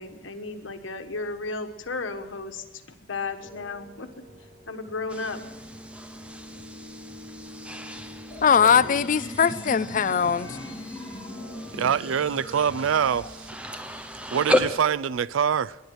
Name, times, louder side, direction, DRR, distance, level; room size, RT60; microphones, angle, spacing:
voice 1, 0.0-2.8 3.1-4.1 4.7-5.4, left 3 dB, 80° left, 1.3 m, -34 dB
sound 1, 3.4-12.5, left 2 dB, 30° right, 4.6 m, -50 dB
sound 2, 5.1-14.8, equal, 5° right, 0.8 m, -34 dB
sound 3, 8.3-13.3, left 1 dB, 20° left, 2.5 m, -40 dB
voice 2, 8.4-10.6, left 7 dB, 40° left, 0.4 m, -21 dB
voice 3, 11.7-13.5 14.3-15.8, right 7 dB, 85° right, 0.4 m, -24 dB
19.5 x 10.5 x 6.4 m
head